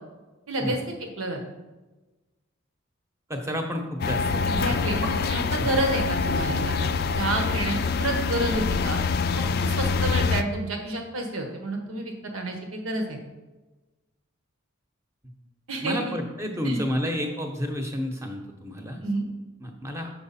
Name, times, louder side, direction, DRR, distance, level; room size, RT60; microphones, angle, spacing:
voice 1, 0.5-0.8 1.2-1.4 4.5-9.0 9.6-13.2 15.7-16.0 16.6-16.8 19.0-19.3, right 2 dB, 85° right, 3 dB, 1.4 m, -29 dB
voice 2, 3.3-5.1 5.6-5.8 15.8-19.0 19.6-20.1, equal, 15° right, 3 dB, 0.9 m, -31 dB
sound 1, 4.0-10.4, left 4 dB, 45° left, 0.3 m, -25 dB
6.9 x 6.2 x 4.2 m, 1.2 s
head